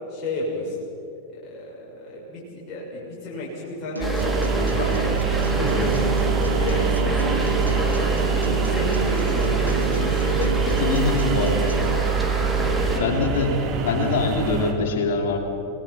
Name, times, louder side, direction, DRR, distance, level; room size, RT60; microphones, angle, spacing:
voice 1, 0.1-0.7 1.3-6.1 6.4-8.1 8.5-9.8 10.0-11.2 12.7-13.2, left 1 dB, 25° left, -6 dB, 6.7 m, -32 dB
sound 1, 4.0-13.0, right 5 dB, ahead, 2.8 m, -24 dB
sound 2, 4.0-11.9, equal, 85° right, 2.6 m, -33 dB
sound 3, 4.2-14.7, right 4 dB, 35° right, 2.9 m, -28 dB
voice 2, 9.9-10.2 10.8-11.7 13.0-15.4, left 3 dB, 55° left, 3 dB, 3.3 m, -24 dB
29.5 x 19.0 x 5.9 m, 2.8 s
figure-of-eight pair, 90°, 0 cm